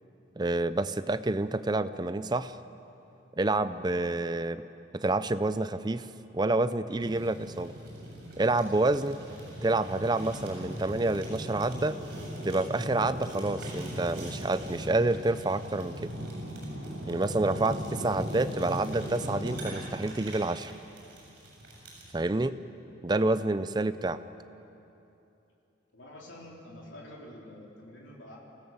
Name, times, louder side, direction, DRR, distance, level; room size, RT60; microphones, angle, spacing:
voice 1, 0.4-2.5 3.4-4.6 4.9-6.1 6.3-7.7 8.4-9.2 9.6-12.0 12.4-16.1 17.1-20.7 22.1-22.6 23.0-24.2, right 2 dB, 20° right, 13 dB, 0.5 m, -28 dB
Fire, 7.0-22.1, equal, 55° right, 7.1 m, -39 dB
voice 2, 25.9-28.4, left 1 dB, 80° left, -3 dB, 3.7 m, -47 dB
26.5 x 16.5 x 7.2 m, 2.9 s
head